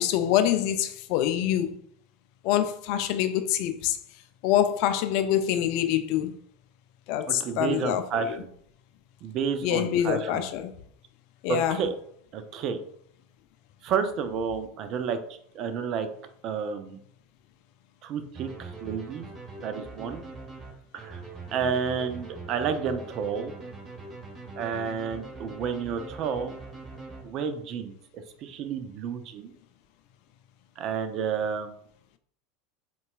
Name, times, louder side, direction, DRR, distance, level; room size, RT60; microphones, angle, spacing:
voice 1, 0.0-1.8 2.4-4.0 4.4-6.3 7.1-8.4 9.6-10.7 11.4-11.8, left 11 dB, 60° left, 0.3 m, -25 dB
voice 2, 7.3-8.5 9.2-10.4 11.5-11.9 12.3-12.8 13.8-15.2 15.5-16.1 16.4-17.0 18.0-19.3 19.6-20.2 20.9-21.2 21.5-23.5 24.6-26.5 27.2-27.9 28.4-29.5 30.8-31.7, right 6 dB, 50° right, 0.4 m, -30 dB
sound 1, 18.3-27.7, right 3 dB, 20° right, 1.2 m, -42 dB
3.9 x 2.2 x 2.3 m
hypercardioid pair, 85°, 0 cm